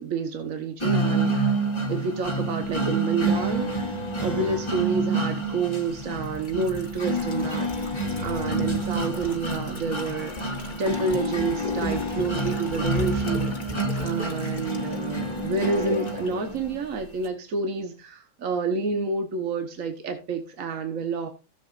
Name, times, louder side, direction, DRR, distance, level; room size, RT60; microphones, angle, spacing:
voice 1, 0.0-1.6 1.9-3.9 4.2-10.5 10.8-21.3, right 4 dB, 75° right, 1.6 m, -29 dB
sound 1, 0.8-16.8, right 2 dB, 20° left, 1.5 m, -28 dB
sound 2, 6.0-16.3 16.6-16.7, left 3 dB, 35° left, 1.4 m, -40 dB
16.0 x 7.3 x 2.5 m
omnidirectional pair, 1.4 m